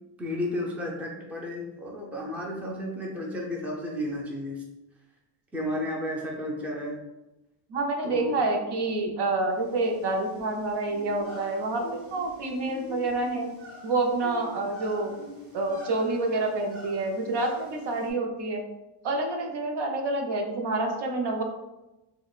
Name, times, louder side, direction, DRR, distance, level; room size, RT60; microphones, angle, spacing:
voice 1, 0.2-4.6 5.5-7.0 8.0-8.4, left 1 dB, 5° right, -2 dB, 0.5 m, -32 dB
voice 2, 7.7-13.5 13.8-15.2 15.5-18.7 19.0-21.4, right 2 dB, 55° right, 2 dB, 0.7 m, -28 dB
sound 1, 9.5-18.1, right 1 dB, 30° right, 1.4 m, -45 dB
4.7 x 2.2 x 2.4 m, 1.0 s
cardioid pair, 110°, 48 cm